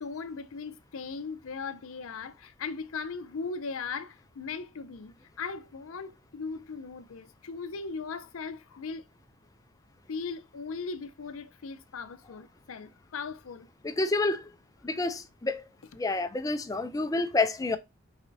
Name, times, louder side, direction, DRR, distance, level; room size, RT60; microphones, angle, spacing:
voice 1, 0.0-9.1 10.1-13.7, left 4 dB, 75° left, 0.5 m, -38 dB
voice 2, 13.8-14.5 14.8-15.6 15.9-17.8, left 3 dB, 15° left, 0.4 m, -28 dB
4.5 x 4.1 x 2.6 m
head